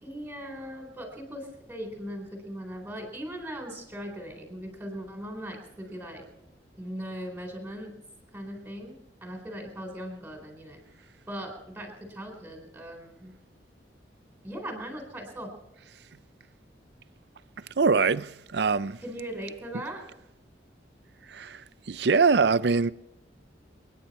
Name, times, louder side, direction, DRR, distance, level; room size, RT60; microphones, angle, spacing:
voice 1, 0.0-6.2 6.8-8.0 8.3-10.8 11.3-13.3 14.4-15.5 19.0-20.0, equal, 10° right, 4.0 m, -39 dB
voice 2, 17.8-19.0 21.3-22.9, right 4 dB, 65° right, 0.5 m, -23 dB
30.0 x 10.0 x 4.3 m
head